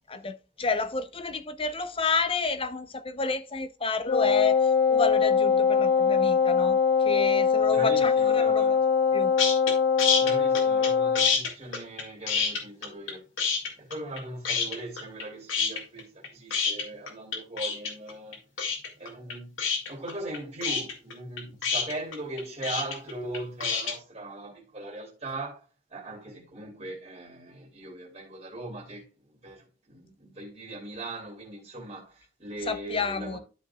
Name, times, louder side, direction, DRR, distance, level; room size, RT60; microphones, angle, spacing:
voice 1, 0.1-8.8 9.1-9.3 32.7-33.4, left 4 dB, 30° left, 0.7 m, -30 dB
Wind instrument woodwind instrument, 4.1-11.4, left 6 dB, 50° left, 1.1 m, -22 dB
voice 2, 7.6-8.8 10.2-13.3 13.8-18.4 19.0-19.6 19.9-33.4, right 2 dB, 35° right, 2.8 m, -39 dB
sound 1, 9.4-9.7 10.0-10.9 11.2-13.1 13.4-14.2 14.5-15.2 15.5-23.9, left 6 dB, 85° left, 2.3 m, -27 dB
12.5 x 5.2 x 2.3 m
head